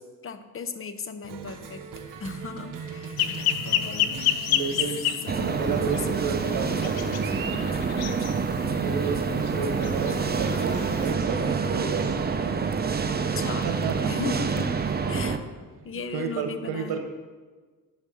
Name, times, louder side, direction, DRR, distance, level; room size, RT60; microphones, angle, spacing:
voice 1, 0.2-1.8 2.2-3.3 3.6-4.2 5.2-6.4 7.3-7.8 13.3-13.7 14.0-14.8 15.1-15.4 15.8-17.0, left 5 dB, 35° left, 10 dB, 0.8 m, -36 dB
Cheering, 1.2-16.4, right 6 dB, 60° right, 0.9 m, -43 dB
sound 1, 3.2-11.1, left 10 dB, 85° left, 0.6 m, -31 dB
voice 2, 4.0-5.0 5.4-7.0 8.7-12.2 13.6-14.1 16.1-17.0, right 5 dB, 85° right, 4 dB, 1.0 m, -31 dB
sound 2, 5.3-15.4, right 5 dB, 25° right, 0.6 m, -27 dB
8.9 x 5.4 x 6.5 m, 1.4 s
cardioid pair, 95°, 36 cm